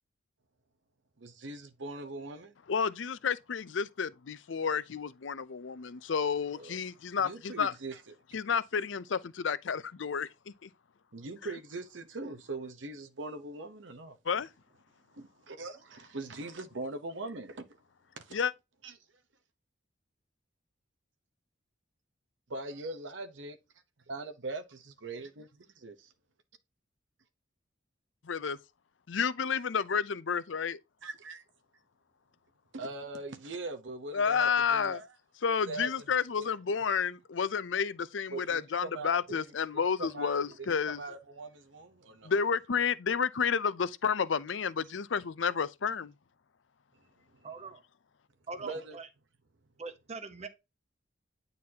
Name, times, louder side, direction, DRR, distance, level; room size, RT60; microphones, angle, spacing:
voice 1, 1.2-2.5 6.6-6.7 7.2-8.0 11.1-14.2 15.1-17.7 18.2-18.4 18.8-18.9 22.5-23.6 24.1-26.1 31.0-31.4 32.7-35.1 35.7-35.9 36.4-36.5 38.3-39.1 40.0-40.4 40.9-42.3 47.5-47.6 48.6-49.0, right 2 dB, 70° right, 0.9 m, -41 dB
voice 2, 2.7-7.7 8.3-10.7 11.4-11.5 14.2-14.5 18.3-18.5 28.2-28.6 29.1-30.8 34.1-35.0 35.4-41.0 42.2-46.1, left 6 dB, 75° left, 0.6 m, -31 dB
voice 3, 47.4-47.8 48.5-49.0 49.8-50.5, right 4 dB, 35° right, 0.9 m, -42 dB
9.5 x 4.0 x 2.8 m
head